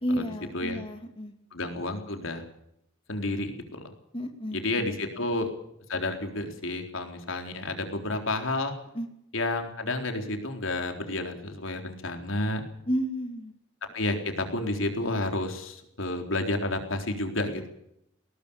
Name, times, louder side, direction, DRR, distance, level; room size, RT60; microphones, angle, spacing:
voice 1, 0.0-1.3 4.1-4.6 5.1-5.3 8.9-9.1 12.9-13.5, equal, 30° left, 5 dB, 2.3 m, -31 dB
voice 2, 1.5-2.4 3.1-3.9 4.5-5.5 5.9-8.7 9.3-12.6 13.9-17.7, left 2 dB, 90° left, 5 dB, 4.0 m, -30 dB
20.0 x 19.0 x 7.2 m, 0.77 s
head